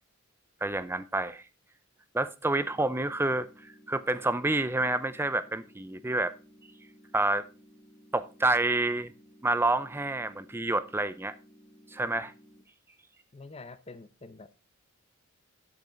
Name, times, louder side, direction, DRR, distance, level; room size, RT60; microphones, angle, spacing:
voice 1, 0.6-1.4 2.1-6.3 7.1-7.5 8.1-9.1 9.4-11.3 11.9-12.3, right 2 dB, 10° right, 0.5 m, -28 dB
sound 1, 2.6-12.6, equal, 10° left, 1.2 m, -57 dB
voice 2, 13.3-14.5, left 3 dB, 30° left, 0.7 m, -46 dB
13.5 x 5.3 x 3.9 m
head